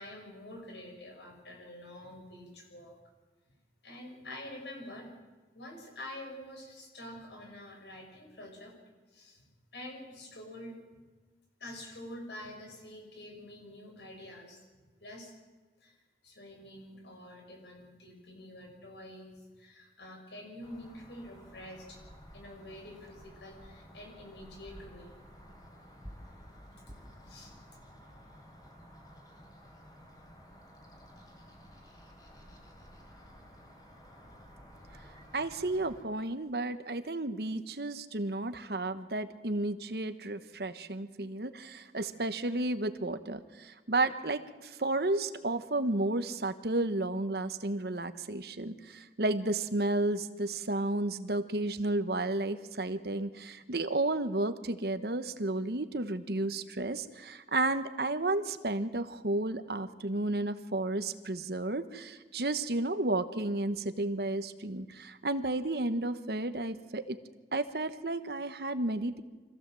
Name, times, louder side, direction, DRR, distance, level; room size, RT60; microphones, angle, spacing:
voice 1, 0.0-3.0 3.8-5.1 5.5-8.7 9.1-9.4 9.7-10.8 11.6-14.6 15.0-15.3 15.8-16.0 16.2-22.0 22.3-25.1 27.3-27.5, left 1 dB, 80° left, 2 dB, 6.0 m, -47 dB
sound 1, 20.6-36.0, equal, 20° left, 3.6 m, -53 dB
voice 2, 35.3-67.2 67.5-69.2, right 2 dB, 65° right, 11 dB, 1.1 m, -32 dB
25.5 x 15.5 x 7.6 m, 1.3 s
head